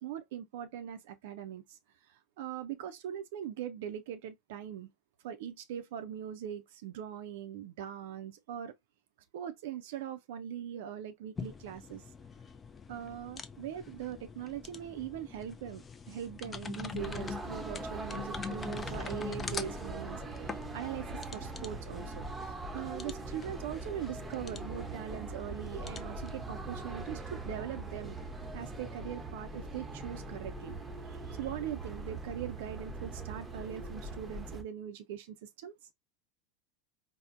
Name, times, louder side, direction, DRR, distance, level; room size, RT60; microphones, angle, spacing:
voice 1, 0.0-1.8 2.1-4.9 5.2-8.7 9.3-12.0 12.9-28.2 28.5-30.7 31.0-35.7, right 10 dB, 60° right, 0.4 m, -41 dB
sound 1, 11.4-29.0, left 5 dB, 20° left, 0.4 m, -45 dB
sound 2, 17.0-34.6, right 2 dB, 15° right, 0.7 m, -41 dB
4.3 x 2.0 x 2.4 m
figure-of-eight pair, 80°, 0 cm